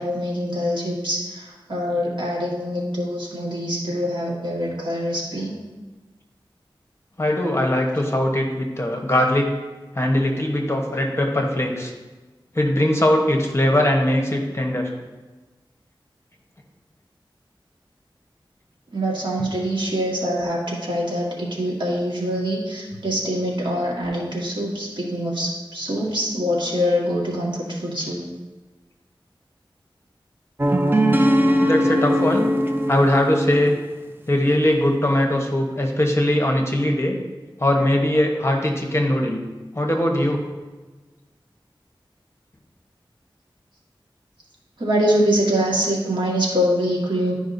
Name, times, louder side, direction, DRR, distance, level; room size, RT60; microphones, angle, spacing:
voice 1, 0.0-5.5 18.9-28.2 44.8-47.3, equal, 65° right, -4 dB, 1.7 m, -24 dB
voice 2, 7.2-9.5 9.9-11.9 12.5-14.9 31.6-32.5 32.9-33.7 34.3-37.2 37.6-39.4 39.7-40.5, left 1 dB, 30° left, 1 dB, 1.0 m, -20 dB
sound 1, 30.6-33.7, equal, 25° right, 0.6 m, -20 dB
11.5 x 5.0 x 2.7 m, 1.2 s
wide cardioid pair, 65°, 9 cm